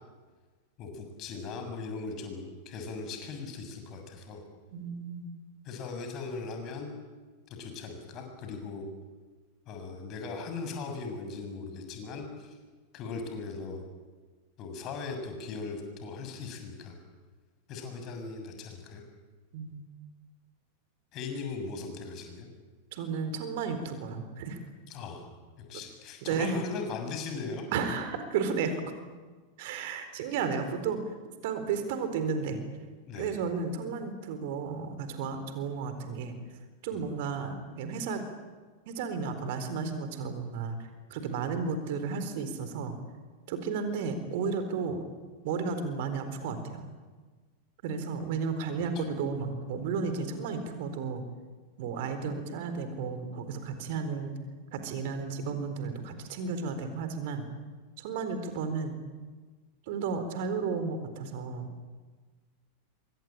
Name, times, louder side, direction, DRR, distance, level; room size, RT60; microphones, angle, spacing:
voice 1, 0.8-4.4 5.7-6.9 7.6-8.9 9.7-12.6 12.9-13.8 14.6-17.0 17.7-19.0 21.1-22.5 24.9-25.3 25.6-27.7 33.1-33.4 36.9-37.1, left 4 dB, 35° left, 5 dB, 6.9 m, -39 dB
voice 2, 4.7-5.3 19.5-19.8 22.9-24.6 26.2-26.6 27.7-28.8 29.6-31.0 31.4-32.6 33.2-36.4 36.8-38.2 38.9-43.0 43.5-45.0 45.4-46.8 47.8-51.2 51.8-54.3 54.7-57.4 58.0-59.0 59.9-61.7, right 5 dB, 50° right, 9 dB, 4.1 m, -33 dB
27.0 x 24.5 x 8.9 m, 1.4 s
figure-of-eight pair, 90°, 0 cm